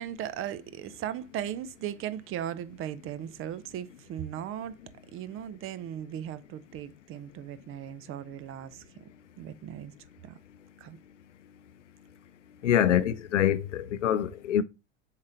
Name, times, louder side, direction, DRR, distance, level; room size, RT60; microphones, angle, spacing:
voice 1, 0.0-4.8 5.1-9.1 9.4-9.9 10.2-10.4 10.8-11.0 12.9-13.0, right 10 dB, 35° right, 0.7 m, -37 dB
voice 2, 12.6-14.6, left 10 dB, 75° left, 0.6 m, -25 dB
7.3 x 4.6 x 3.9 m
figure-of-eight pair, 70°, 36 cm